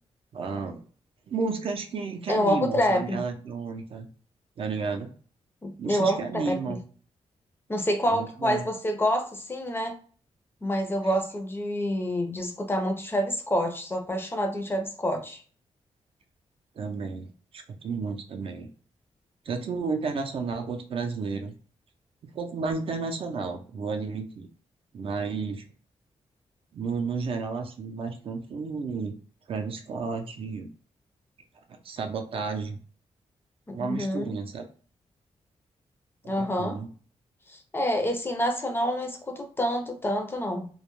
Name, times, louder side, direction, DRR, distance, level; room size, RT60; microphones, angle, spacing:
voice 1, 0.3-0.8 1.3-4.1 4.6-5.1 5.8-6.8 8.1-8.7 11.0-11.1 16.8-18.7 19.5-21.5 22.2-24.5 24.9-25.6 26.7-29.1 29.5-30.7 31.8-32.8 33.7-34.7 36.2-36.9, right 4 dB, 50° right, 6 dB, 0.4 m, -32 dB
voice 2, 2.3-3.2 5.6-6.8 7.7-10.0 10.6-15.4 33.7-34.2 36.2-36.8 37.5-40.7, equal, 20° left, 4 dB, 0.4 m, -27 dB
2.2 x 2.0 x 2.9 m, 0.41 s
wide cardioid pair, 150°, 12 cm